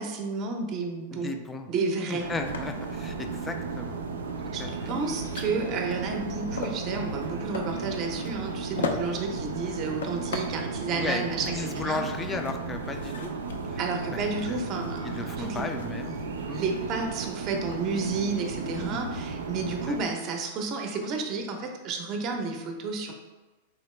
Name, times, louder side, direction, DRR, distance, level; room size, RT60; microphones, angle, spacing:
voice 1, 0.0-1.3 1.7-2.2 4.5-12.0 13.8-15.6 16.5-23.1, right 4 dB, 40° right, 3 dB, 0.7 m, -31 dB
voice 2, 1.1-1.7 2.1-4.0 4.6-4.7 10.9-13.3 13.6-13.8 14.1-14.2 14.5-14.7 15.0-16.2 16.5-16.7 18.7-19.0 19.9-20.0, left 3 dB, 15° left, 6 dB, 0.4 m, -35 dB
sound 1, 2.2-20.0, right 4 dB, 90° right, 0.4 m, -35 dB
sound 2, 2.5-18.6, left 4 dB, 85° left, 0.4 m, -41 dB
4.0 x 2.9 x 3.2 m, 1.2 s
hypercardioid pair, 125°, 0 cm